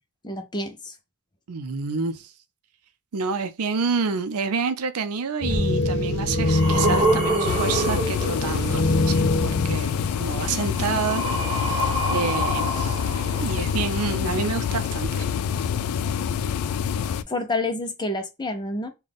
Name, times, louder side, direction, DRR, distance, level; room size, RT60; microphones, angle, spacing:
voice 1, 0.2-0.9 17.3-18.9, left 2 dB, 20° left, 0.5 m, -28 dB
voice 2, 1.5-2.3 3.1-9.9 10.2-13.0 13.4-15.3, right 5 dB, 85° right, 0.5 m, -28 dB
sound 1, 5.4-10.5, left 2 dB, 50° left, 0.8 m, -25 dB
sound 2, 5.5-5.6 6.1-8.9 10.1-14.0 15.0-15.1, right 1 dB, 25° right, 1.3 m, -27 dB
sound 3, 7.4-17.2, left 7 dB, 80° left, 0.3 m, -26 dB
3.9 x 2.3 x 3.4 m
head